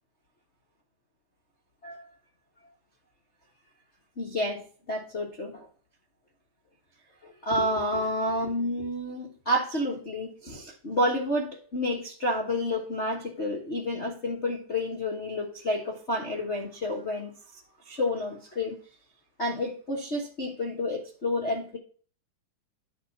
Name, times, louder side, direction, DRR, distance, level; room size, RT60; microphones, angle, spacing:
voice 1, 4.2-5.7 7.2-17.6 17.8-18.8 19.4-21.8, left 1 dB, 55° left, 0.7 m, -30 dB
10.5 x 4.5 x 5.8 m
omnidirectional pair, 3.7 m